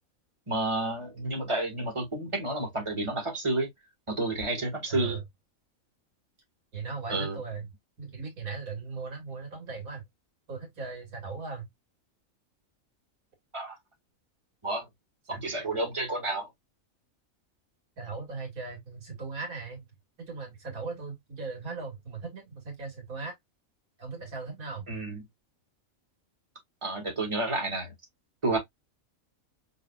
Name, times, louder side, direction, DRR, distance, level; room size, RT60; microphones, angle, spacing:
voice 1, 0.5-3.7 4.1-5.2 7.1-7.4 13.5-13.8 14.6-14.8 15.3-16.5 24.9-25.2 26.8-27.9 28.4-28.6, right 2 dB, 20° right, 1.7 m, -30 dB
voice 2, 4.9-5.2 6.7-7.7 8.0-10.0 10.5-11.7 15.3-15.4 18.0-19.9 20.2-23.3 24.0-24.9, right 4 dB, 90° right, 2.3 m, -38 dB
5.3 x 3.4 x 2.3 m
omnidirectional pair, 1.4 m